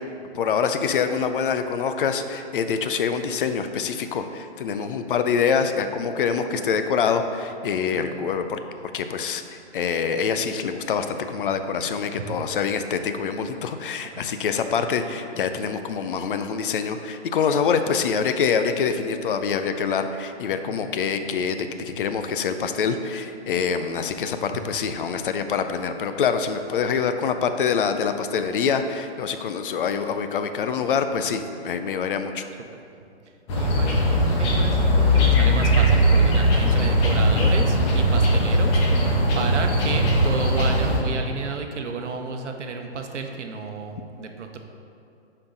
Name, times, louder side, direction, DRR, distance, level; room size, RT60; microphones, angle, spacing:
voice 1, 0.3-8.6 8.9-32.4, left 6 dB, 50° left, 8 dB, 0.5 m, -25 dB
voice 2, 7.9-8.3 14.2-14.3 20.7-20.9 33.6-34.0 34.3-38.8 39.3-44.6, right 4 dB, 90° right, 4 dB, 0.8 m, -32 dB
sound 1, 33.5-41.0, equal, 25° left, 0.8 m, -19 dB
7.1 x 4.6 x 3.9 m, 2.5 s
hypercardioid pair, 150°, 34 cm